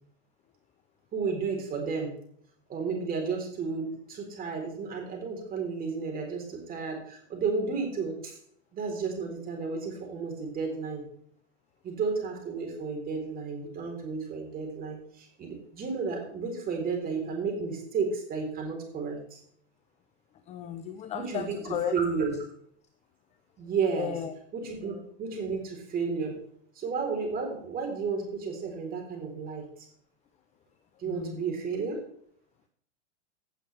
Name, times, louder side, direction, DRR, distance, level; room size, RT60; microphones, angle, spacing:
voice 1, 1.1-2.1 2.7-8.4 8.7-11.0 11.8-19.4 21.1-22.4 23.6-24.2 24.5-26.4 26.8-29.9 31.0-32.0, right 5 dB, 25° right, 2 dB, 3.9 m, -32 dB
voice 2, 20.5-22.0 23.9-24.3 31.1-31.4, left 10 dB, 20° left, 9 dB, 0.6 m, -34 dB
16.5 x 7.6 x 3.4 m, 0.64 s
hypercardioid pair, 140°, 36 cm